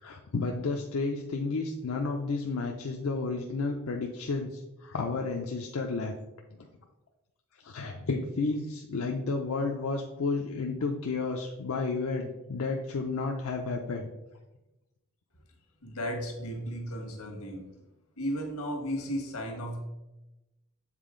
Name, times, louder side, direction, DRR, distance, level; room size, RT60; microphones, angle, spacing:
voice 1, 0.0-6.1 7.6-14.0, left 3 dB, 70° left, 2 dB, 0.5 m, -32 dB
voice 2, 15.8-17.7 18.2-19.8, equal, 85° left, 2 dB, 1.5 m, -34 dB
7.4 x 4.0 x 3.7 m, 1.0 s
head